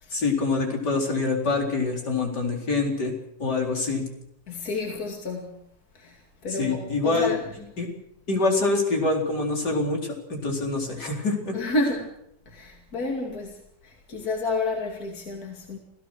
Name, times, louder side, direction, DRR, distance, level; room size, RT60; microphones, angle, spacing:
voice 1, 0.1-3.1 3.4-4.1 6.5-7.3 7.8-7.9 8.3-11.5, left 3 dB, 85° left, 5.0 m, -25 dB
voice 2, 4.5-5.5 6.0-7.5 11.5-12.1 12.5-13.6 13.8-15.8, left 2 dB, 65° left, 2.9 m, -30 dB
28.5 x 16.5 x 6.4 m
omnidirectional pair, 1.8 m